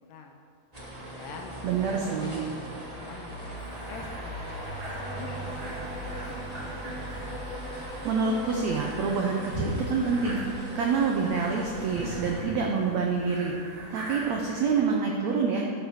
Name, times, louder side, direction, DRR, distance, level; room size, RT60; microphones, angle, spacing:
sound 1, 0.7-12.4, right 1 dB, 65° right, 0.3 m, -38 dB
voice 1, 1.0-1.5 1.9-6.5, left 5 dB, 75° left, 3 dB, 2.2 m, -47 dB
voice 2, 1.6-2.4 8.0-13.5 13.9-15.7, right 5 dB, 85° right, 1 dB, 1.5 m, -27 dB
sound 2, 3.6-14.8, right 1 dB, 45° right, 3.5 m, -41 dB
11.0 x 6.7 x 6.3 m, 2.4 s
omnidirectional pair, 4.3 m